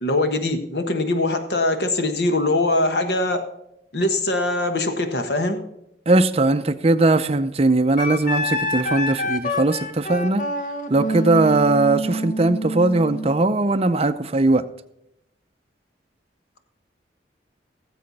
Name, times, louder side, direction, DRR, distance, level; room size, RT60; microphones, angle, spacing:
voice 1, 0.0-3.4 3.9-5.6, left 2 dB, 65° left, 1.3 m, -22 dB
voice 2, 6.1-10.4 10.9-14.6, right 2 dB, 35° right, 0.6 m, -19 dB
Wind instrument woodwind instrument, 8.0-13.3, equal, 45° left, 1.1 m, -27 dB
18.5 x 7.6 x 4.1 m
head